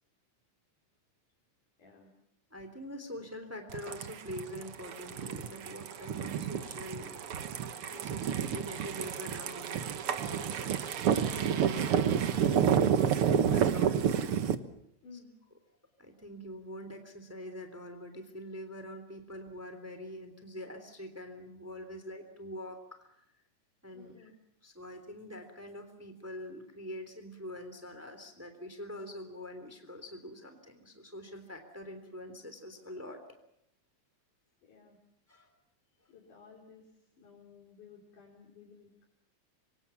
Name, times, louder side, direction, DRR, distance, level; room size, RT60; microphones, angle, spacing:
voice 1, 1.8-2.1 15.0-15.3 23.9-24.3 34.6-35.0 36.1-39.0, left 5 dB, 85° left, -2 dB, 5.9 m, -55 dB
voice 2, 2.5-7.2 7.9-14.1 16.0-23.1 23.8-24.3 24.6-33.2 35.3-35.5 36.0-36.1, equal, 5° right, 8 dB, 3.0 m, -44 dB
sound 1, 3.7-14.6, right 8 dB, 55° right, 1.8 m, -30 dB
26.0 x 24.5 x 7.3 m, 0.78 s
omnidirectional pair, 3.5 m